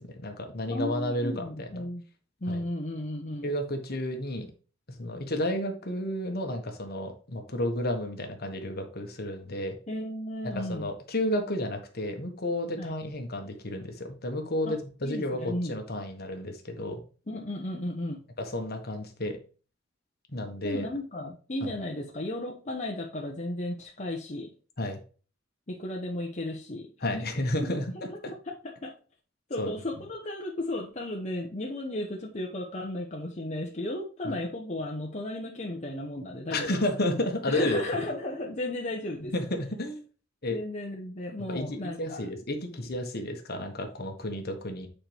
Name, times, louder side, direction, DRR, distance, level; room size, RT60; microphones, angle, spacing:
voice 1, 0.0-1.9 2.5-2.6 3.4-4.5 4.9-9.8 10.4-17.0 18.4-19.4 20.3-20.9 21.6-21.8 24.8-25.0 27.0-28.3 29.6-29.8 34.2-34.4 36.5-37.8 39.2-40.0 40.4-40.6 41.5-44.9, left 1 dB, 55° left, 5 dB, 1.4 m, -32 dB
voice 2, 0.7-2.0 2.4-3.5 9.9-10.9 12.8-13.0 14.6-14.8 15.0-15.8 17.3-18.2 20.6-24.5 25.7-26.9 27.1-27.3 28.5-28.9 29.5-36.8 37.5-39.3 40.5-42.3, left 1 dB, 35° left, -1 dB, 1.0 m, -34 dB
8.7 x 4.4 x 3.4 m, 0.38 s
head